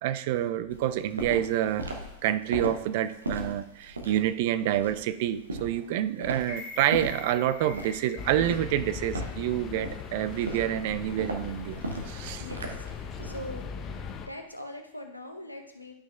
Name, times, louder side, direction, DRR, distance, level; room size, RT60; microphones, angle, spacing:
voice 1, 0.0-1.9 2.2-12.5, right 12 dB, 50° right, 12 dB, 0.3 m, -28 dB
Walk footsteps, 0.7-13.5, right 1 dB, 75° right, 0.9 m, -37 dB
sound 1, 6.4-10.5 10.9-11.0, left 4 dB, 55° left, 2.2 m, -46 dB
sound 2, 8.2-14.3, left 6 dB, 30° left, 0.7 m, -39 dB
voice 2, 12.4-12.9 13.2-16.0, left 1 dB, 90° left, 4 dB, 0.7 m, -42 dB
11.0 x 6.1 x 2.3 m, 0.87 s
figure-of-eight pair, 90°, 0 cm